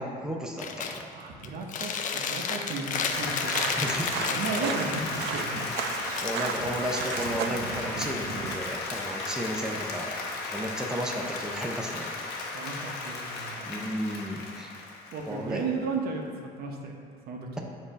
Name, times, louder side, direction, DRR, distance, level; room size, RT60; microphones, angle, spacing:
voice 1, 0.0-1.1 3.8-4.7 6.2-10.1 10.5-12.1 13.6-14.8 15.3-15.6, equal, 5° right, 0 dB, 0.6 m, -33 dB
Chewing mastication, 0.6-1.0 1.4-5.0 6.1-7.6, left 6 dB, 50° left, 0.5 m, -32 dB
voice 2, 1.1-3.6 4.2-5.7 12.5-13.7 15.1-16.9 17.3-17.6, right 4 dB, 65° right, 2 dB, 0.8 m, -34 dB
Applause, 2.5-15.6, left 3 dB, 80° left, 0.9 m, -35 dB
sound 1, 3.1-8.6, right 7 dB, 80° right, 0.4 m, -36 dB
7.1 x 2.7 x 5.0 m, 2.1 s
cardioid pair, 110°, 17 cm